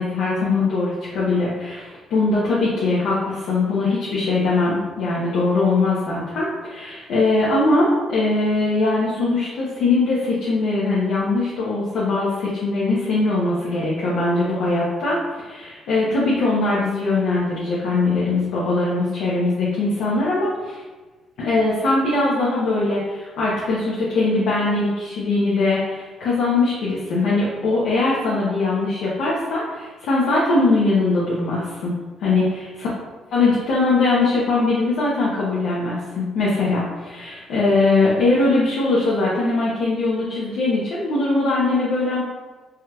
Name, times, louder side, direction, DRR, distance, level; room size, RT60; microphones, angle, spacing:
voice 1, 0.0-20.8 21.4-31.9 32.2-32.9 33.3-42.2, left 3 dB, 85° left, -7 dB, 0.7 m, -21 dB
3.5 x 2.8 x 2.2 m, 1.2 s
cardioid pair, 90°, 0 cm